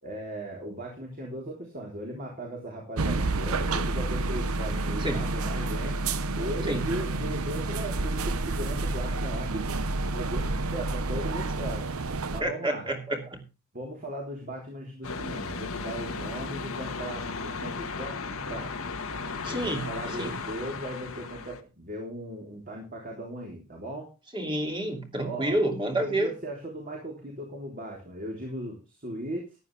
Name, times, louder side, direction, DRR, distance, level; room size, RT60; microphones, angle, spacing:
voice 1, 0.0-6.0 6.4-9.7 10.1-11.9 12.3-12.9 13.7-18.9 19.5-24.1 25.2-25.6 26.0-29.6, right 1 dB, 40° right, -1 dB, 3.8 m, -37 dB
sound 1, 3.0-12.4, right 2 dB, 85° right, 0.9 m, -29 dB
voice 2, 5.0-5.3 6.7-6.9 12.4-13.5 19.4-19.9 20.2-20.4 24.3-26.3, right 1 dB, 25° right, 3 dB, 2.7 m, -29 dB
sound 2, 15.0-21.6, left 4 dB, 85° left, 1.6 m, -35 dB
14.5 x 11.0 x 3.4 m, 0.29 s
head